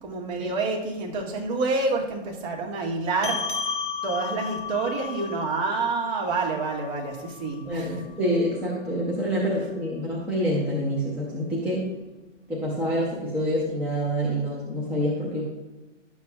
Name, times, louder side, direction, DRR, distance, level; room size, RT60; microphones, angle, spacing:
voice 1, 0.0-3.7 4.0-8.0, right 3 dB, 35° right, 0 dB, 1.6 m, -28 dB
sound 1, 3.2-8.0, left 5 dB, 20° left, 1.2 m, -34 dB
voice 2, 7.7-11.9 12.5-15.4, equal, 5° right, -6 dB, 0.5 m, -27 dB
11.5 x 7.3 x 2.3 m, 1.1 s
hypercardioid pair, 150°, 37 cm